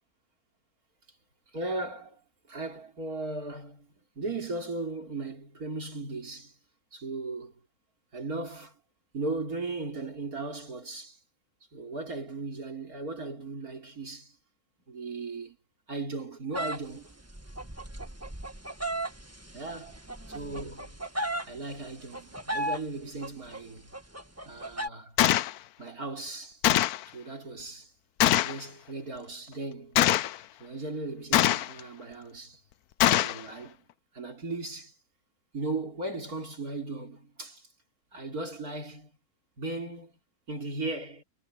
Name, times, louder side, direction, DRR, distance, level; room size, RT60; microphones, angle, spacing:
voice 1, 1.5-2.2 2.5-3.9 4.2-6.6 6.9-7.6 8.1-8.8 9.1-11.2 11.7-14.4 14.9-15.6 15.9-17.2 19.5-20.0 20.3-21.0 21.4-23.9 24.4-25.2 25.8-26.6 27.1-27.9 28.4-30.0 30.6-32.6 33.2-33.8 34.1-34.9 35.5-37.7 38.1-39.1 39.6-40.2 40.5-41.2, right 3 dB, 70° right, 4.4 m, -37 dB
sound 1, 16.5-21.6 21.9-22.8 23.2-23.6 23.9-24.9, right 1 dB, 10° right, 1.6 m, -35 dB
Gunshot gunfire, 25.2-25.5 26.6-27.0 28.2-28.6 30.0-30.4 31.3-31.8 33.0-33.4, left 13 dB, 80° left, 1.1 m, -22 dB
omnidirectional pair, 1.6 m